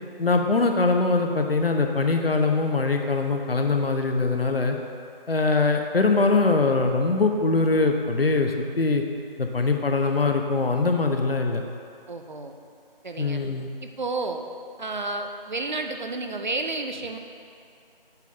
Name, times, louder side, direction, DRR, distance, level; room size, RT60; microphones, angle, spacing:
voice 1, 0.2-4.8 5.3-9.0 9.4-11.6 13.2-13.7, left 3 dB, 80° left, 4 dB, 0.9 m, -22 dB
voice 2, 12.1-12.6 13.0-13.4 13.8-14.4 14.8-17.2, right 3 dB, 50° right, 5 dB, 0.7 m, -31 dB
8.0 x 4.3 x 7.0 m, 2.4 s
figure-of-eight pair, 170°, 29 cm